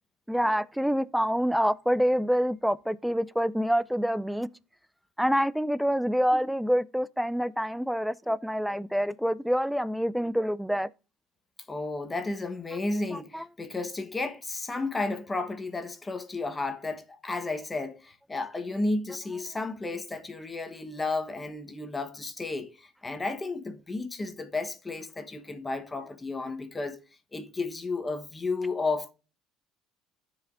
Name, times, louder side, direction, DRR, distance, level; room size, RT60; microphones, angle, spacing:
voice 1, 0.3-4.5 5.2-10.9 13.1-13.4, equal, ahead, 0.5 m, -26 dB
voice 2, 11.7-27.0 27.3-29.1, left 3 dB, 20° left, 1.3 m, -33 dB
14.0 x 5.0 x 2.6 m
supercardioid pair, 100°, 0 cm